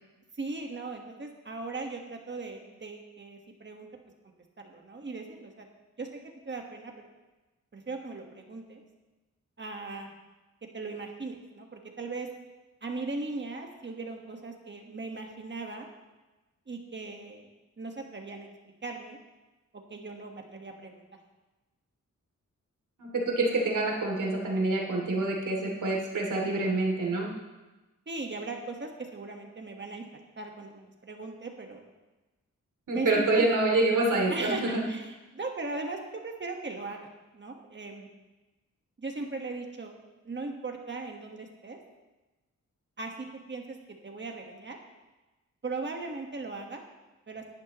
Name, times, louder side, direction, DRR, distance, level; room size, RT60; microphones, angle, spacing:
voice 1, 0.4-3.9 4.6-5.7 6.0-6.1 6.4-7.1 7.7-8.8 9.6-10.1 10.7-12.3 12.8-15.9 16.7-17.5 17.8-18.5 18.8-19.2 19.7-21.0 26.4-26.8 28.1-30.1 30.4-31.8 32.9-33.5 34.3-38.1 39.0-39.9 40.2-41.8 43.0-43.8 44.0-44.8 45.6-46.8 47.3-47.4, right 3 dB, 35° right, 2 dB, 1.4 m, -38 dB
voice 2, 23.0-27.3 32.9-34.9, right 2 dB, 85° right, -1 dB, 2.8 m, -27 dB
18.5 x 11.0 x 3.0 m, 1.1 s
wide cardioid pair, 165°, 30 cm